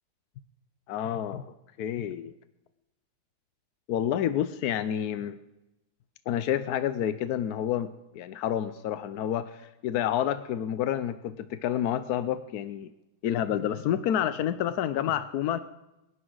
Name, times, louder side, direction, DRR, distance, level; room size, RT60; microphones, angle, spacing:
voice 1, 0.9-1.5 1.8-2.3 3.9-5.4 6.3-12.9 13.2-15.6, left 10 dB, 75° left, 12 dB, 0.9 m, -29 dB
24.5 x 11.0 x 3.9 m, 0.95 s
omnidirectional pair, 2.3 m